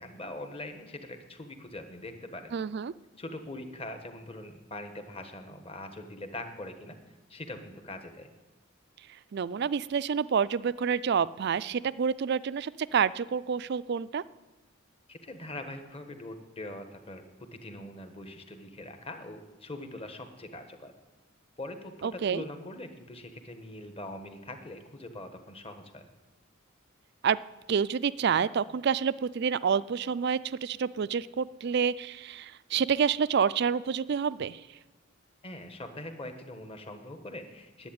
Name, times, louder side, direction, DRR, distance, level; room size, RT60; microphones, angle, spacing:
voice 1, 0.0-2.5 3.2-8.3 15.1-17.2 17.5-20.9 21.6-26.1 35.4-37.9, left 1 dB, 25° left, 7 dB, 1.3 m, -42 dB
voice 2, 2.5-2.9 9.3-14.2 22.0-22.4 27.2-27.4 27.7-34.6, right 6 dB, 50° right, 18 dB, 0.4 m, -28 dB
10.5 x 8.6 x 8.8 m, 1.2 s
head